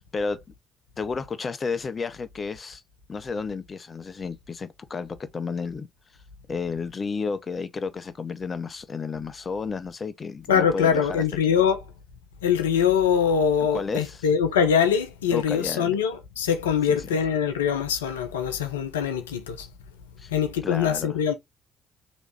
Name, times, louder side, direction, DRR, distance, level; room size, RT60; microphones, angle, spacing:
voice 1, 0.1-0.4 1.0-2.8 3.1-5.9 6.5-11.2 13.7-14.2 15.3-16.0 16.9-17.1 20.2-20.3 20.6-21.2, left 4 dB, 35° left, 0.5 m, -32 dB
voice 2, 10.5-11.8 12.4-19.7 20.3-21.3, left 7 dB, 80° left, 0.5 m, -23 dB
5.1 x 3.1 x 3.0 m
figure-of-eight pair, 45°, 0 cm